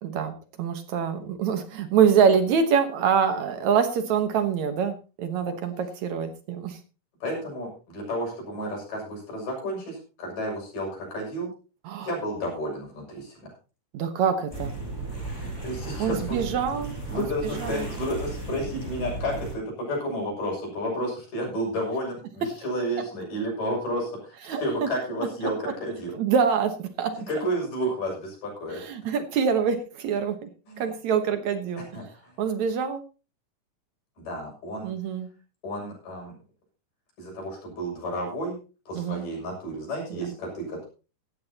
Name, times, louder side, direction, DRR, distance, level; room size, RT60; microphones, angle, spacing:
voice 1, 0.0-6.8 11.9-12.1 13.9-14.7 16.0-17.3 17.6-17.9 24.5-24.9 26.1-27.3 28.7-30.5 30.8-31.9 32.4-33.0 34.8-35.3 38.9-39.3 40.1-40.3, right 7 dB, 65° right, 8 dB, 2.3 m, -25 dB
voice 2, 7.2-11.5 12.0-13.5 15.3-16.4 17.1-24.3 24.6-26.1 27.1-28.8 30.7-30.9 31.9-32.3 34.2-34.9 35.6-36.3 37.2-38.6 38.9-40.9, equal, 75° left, -1 dB, 8.2 m, -31 dB
sound 1, 14.5-19.5, right 2 dB, 5° right, 7.1 m, -35 dB
17.0 x 12.5 x 2.9 m, 0.33 s
omnidirectional pair, 3.8 m